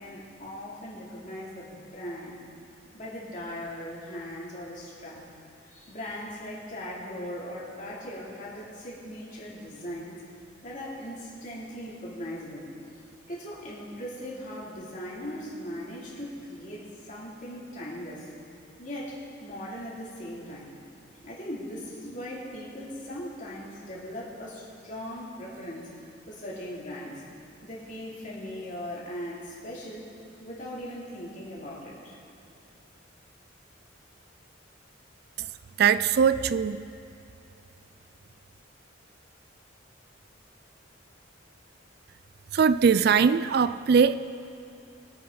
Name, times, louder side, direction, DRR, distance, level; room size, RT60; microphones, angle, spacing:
voice 1, 0.0-2.5 2.9-5.2 5.6-10.2 10.6-12.7 13.3-18.3 18.8-20.7 21.2-25.9 26.3-27.3 27.6-30.1 30.4-32.2, equal, 40° left, -5 dB, 2.8 m, -39 dB
voice 2, 35.8-36.8 42.5-44.1, right 6 dB, 50° right, 15 dB, 0.3 m, -21 dB
21.0 x 8.7 x 3.9 m, 2.8 s
head